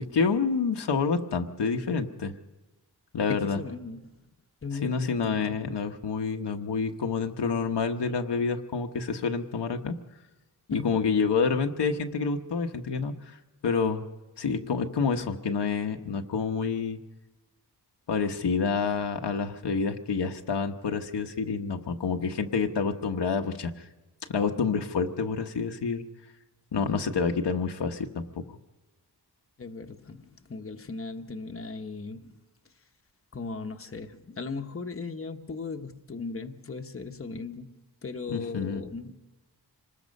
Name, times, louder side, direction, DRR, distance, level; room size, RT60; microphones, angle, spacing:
voice 1, 0.1-2.3 3.1-3.6 4.8-9.9 10.7-13.4 13.6-14.0 14.4-17.0 18.1-23.8 24.3-26.0 26.7-28.4 38.3-38.8, left 5 dB, 85° left, 4 dB, 1.2 m, -28 dB
voice 2, 3.3-4.3 4.6-5.6 10.7-11.0 26.8-27.0 29.6-32.3 33.3-37.7 38.0-39.1, left 4 dB, 35° left, 5 dB, 1.1 m, -37 dB
26.0 x 20.0 x 5.4 m, 1.1 s
wide cardioid pair, 120°, 40 cm